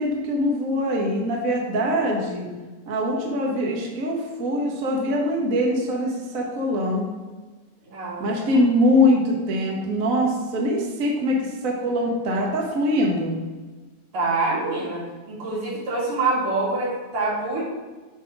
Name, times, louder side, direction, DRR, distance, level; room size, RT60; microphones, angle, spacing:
voice 1, 0.0-2.5 2.9-7.1 8.2-13.4, left 1 dB, 50° right, -1 dB, 1.0 m, -23 dB
voice 2, 7.9-8.6 14.1-17.6, right 3 dB, 70° right, -8 dB, 4.6 m, -26 dB
11.5 x 4.3 x 5.0 m, 1.3 s
omnidirectional pair, 3.9 m